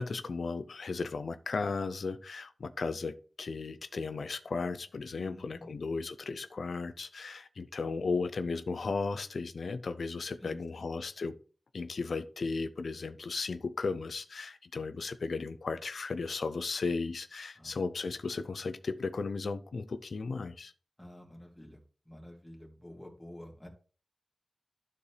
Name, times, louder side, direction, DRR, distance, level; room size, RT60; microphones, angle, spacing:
voice 1, 0.0-11.4 11.7-20.7, left 4 dB, 85° left, 0.5 m, -35 dB
voice 2, 5.1-5.7 10.4-10.6 17.6-17.8 21.0-21.8 22.1-23.7, left 1 dB, 15° left, 2.2 m, -49 dB
12.0 x 4.2 x 3.3 m
cardioid pair, 45°, 0 cm